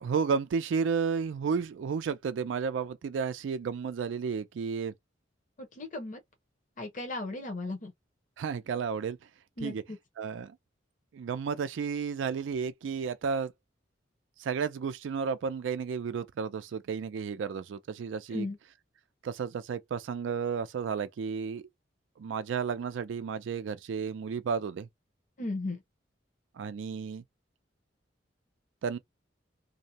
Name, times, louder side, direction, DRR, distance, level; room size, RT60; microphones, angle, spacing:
voice 1, 0.0-4.9 8.4-9.2 9.6-9.8 10.2-10.6 11.1-13.5 14.4-18.5 19.2-21.6 22.2-24.9 26.6-27.2 28.8-29.0, right 6 dB, 85° right, 0.4 m, -32 dB
voice 2, 5.6-6.2 6.8-7.9 9.6-10.0 18.3-18.6 25.4-25.8, left 2 dB, 45° left, 0.7 m, -36 dB
2.6 x 2.0 x 2.7 m
head